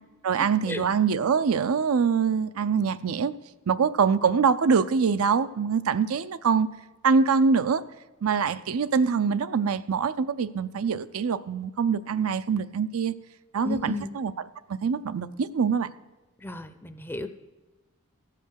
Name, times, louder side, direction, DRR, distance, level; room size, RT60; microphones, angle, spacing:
voice 1, 0.2-3.3 3.7-6.7 7.0-7.8 8.2-13.1 13.5-15.9, right 6 dB, 85° right, 0.5 m, -24 dB
voice 2, 13.6-14.1 16.4-17.3, left 2 dB, 10° left, 0.5 m, -33 dB
15.0 x 5.8 x 6.4 m
head